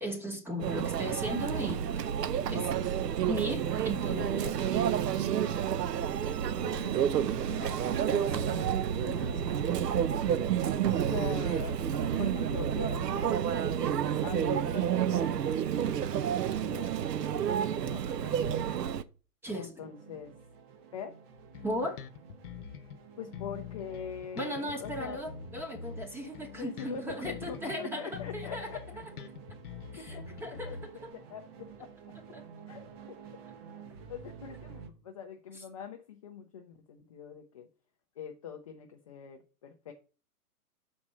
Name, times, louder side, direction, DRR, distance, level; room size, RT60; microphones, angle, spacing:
voice 1, 0.0-2.0 2.5-2.7 3.3-4.8 19.4-19.9 21.6-22.0 24.4-28.7 29.9-30.8 31.0-31.1 32.3-32.4, equal, 5° right, 1.0 m, -37 dB
Conversation / Chatter / Crowd, 0.6-19.0, right 9 dB, 85° right, 0.7 m, -30 dB
voice 2, 5.3-5.7 6.6-7.0 7.4-8.7 9.0-9.6 10.9-15.4 16.6-16.9 17.2-18.6 19.5-20.3 20.9-21.2 23.2-25.2 26.6-28.8 30.0-30.1 30.6-30.8 31.3-31.9 32.7-32.8 34.1-37.7 38.2-39.9, left 7 dB, 25° left, 0.4 m, -43 dB
sound 1, 19.8-34.9, right 6 dB, 40° right, 1.0 m, -51 dB
Bass guitar, 21.5-23.0 23.3-27.8 28.1-31.1, left 7 dB, 70° left, 0.9 m, -45 dB
5.9 x 4.3 x 6.1 m
hypercardioid pair, 130°, 47 cm